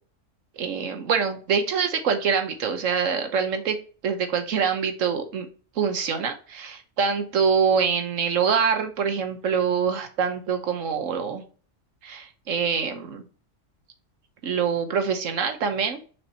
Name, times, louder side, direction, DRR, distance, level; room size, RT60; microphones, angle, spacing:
voice 1, 0.6-3.8 4.0-5.5 5.8-11.4 12.0-13.3 14.4-16.0, right 6 dB, 75° right, 7 dB, 1.2 m, -25 dB
7.0 x 5.2 x 2.7 m, 0.39 s
omnidirectional pair, 1.3 m